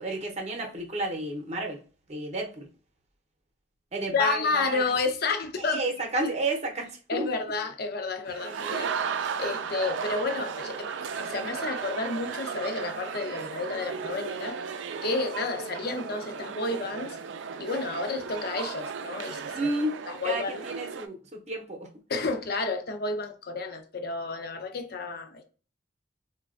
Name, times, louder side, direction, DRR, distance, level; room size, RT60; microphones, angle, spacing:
voice 1, 0.0-1.8 2.1-2.7 3.9-4.8 5.7-7.3 8.4-8.7 19.5-19.9 20.2-21.9, right 2 dB, 35° right, 0.7 m, -31 dB
voice 2, 4.1-5.8 7.1-10.9 11.2-14.6 15.0-17.2 17.6-19.7 20.1-20.6 22.1-25.4, left 3 dB, 55° left, 0.6 m, -31 dB
sound 1, 8.3-21.1, right 6 dB, 75° right, 0.4 m, -35 dB
4.0 x 2.2 x 2.4 m
head